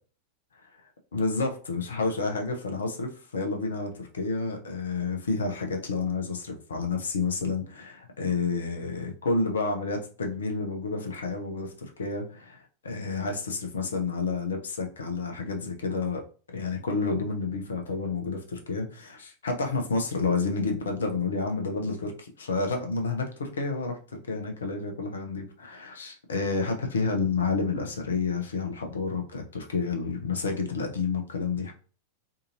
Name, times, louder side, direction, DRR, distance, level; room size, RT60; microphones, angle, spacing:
voice 1, 1.1-16.2 16.5-31.7, left 4 dB, 70° left, 3 dB, 0.6 m, -30 dB
2.7 x 2.5 x 2.7 m, 0.39 s
figure-of-eight pair, 90°, 0 cm